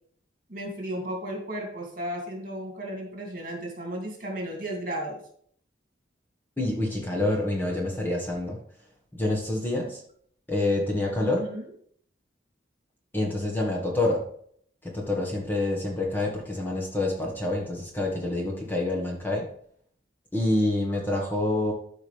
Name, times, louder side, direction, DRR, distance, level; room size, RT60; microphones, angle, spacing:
voice 1, 0.5-5.2 11.2-11.6, right 1 dB, 45° right, 0 dB, 2.5 m, -34 dB
voice 2, 6.6-8.6 9.2-10.0 10.5-11.4 13.1-14.2 14.9-19.5 20.3-21.7, left 2 dB, 10° left, -2 dB, 1.4 m, -27 dB
13.0 x 5.2 x 3.4 m, 0.62 s
head